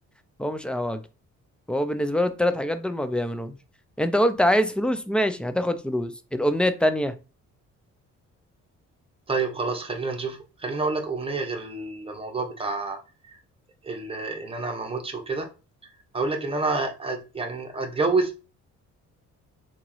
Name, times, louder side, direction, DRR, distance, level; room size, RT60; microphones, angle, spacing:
voice 1, 0.4-1.0 1.7-3.5 4.0-7.1, equal, 5° left, 0.4 m, -24 dB
voice 2, 9.3-13.0 13.3-13.4 13.8-15.5 16.1-18.4, right 3 dB, 20° right, 0.9 m, -28 dB
3.5 x 3.0 x 3.1 m
cardioid pair, 90°, 30 cm